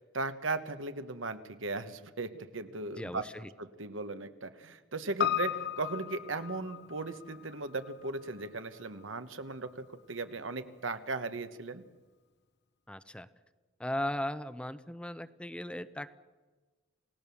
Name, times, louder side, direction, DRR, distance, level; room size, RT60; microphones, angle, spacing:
voice 1, 0.0-3.3 3.6-11.8, right 3 dB, 85° right, 10 dB, 1.3 m, -37 dB
voice 2, 3.0-3.5 12.9-13.3 13.8-16.1, left 1 dB, 5° left, 13 dB, 0.6 m, -37 dB
Piano, 5.2-9.7 10.0-10.1, left 9 dB, 60° left, 0.9 m, -36 dB
28.0 x 17.5 x 7.1 m, 1.3 s
head